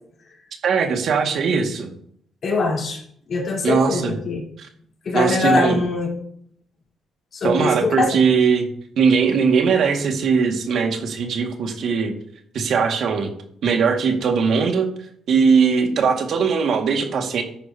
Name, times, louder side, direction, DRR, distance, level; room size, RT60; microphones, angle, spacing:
voice 1, 0.6-1.9 3.6-4.2 4.6-4.7 5.1-5.8 7.4-8.7 9.0-12.1 12.5-13.3 13.6-14.9 15.3-17.4, right 5 dB, 65° right, 3 dB, 2.0 m, -20 dB
voice 2, 2.4-3.0 3.3-4.4 5.0-6.1 7.3-8.2, left 3 dB, 50° left, -2 dB, 3.8 m, -22 dB
14.0 x 9.8 x 2.9 m, 0.67 s
cardioid pair, 90°, 0 cm